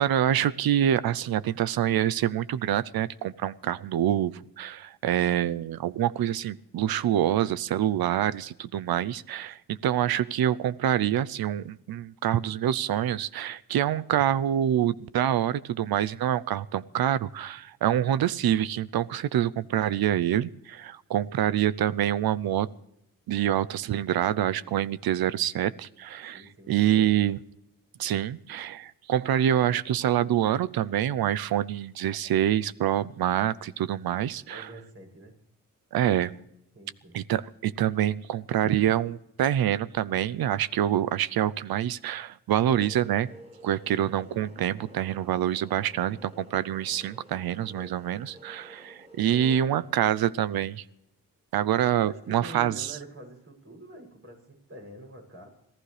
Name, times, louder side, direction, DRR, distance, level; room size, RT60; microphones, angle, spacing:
voice 1, 0.0-22.7 23.3-27.4 28.0-34.7 35.9-36.3 37.1-39.1 39.4-43.3 43.6-50.8 51.5-52.9, right 11 dB, 90° right, 17 dB, 0.6 m, -26 dB
voice 2, 26.3-27.2 34.4-35.3 36.7-37.2 52.0-55.5, right 1 dB, 40° right, 1 dB, 7.2 m, -46 dB
sound 1, 42.6-49.6, equal, 20° right, 4.8 m, -50 dB
26.0 x 16.0 x 3.3 m, 0.81 s
cardioid pair, 65°, 35 cm